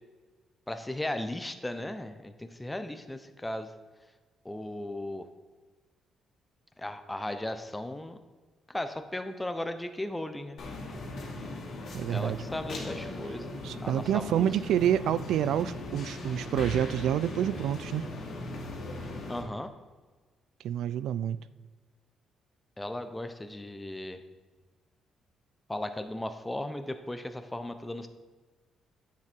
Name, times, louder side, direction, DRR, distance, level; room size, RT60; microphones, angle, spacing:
voice 1, 0.7-3.7 4.4-5.3 6.8-8.2 8.7-10.6 12.1-13.5 13.8-14.5 19.3-19.7 22.8-24.2 25.7-28.1, left 1 dB, 10° left, 8 dB, 0.7 m, -36 dB
sound 1, 10.6-19.4, left 2 dB, 65° left, 2.2 m, -39 dB
voice 2, 11.9-12.4 13.6-18.0 20.6-21.4, right 10 dB, 80° right, 16 dB, 0.4 m, -28 dB
9.7 x 7.5 x 4.5 m, 1.3 s
cardioid pair, 90°, 0 cm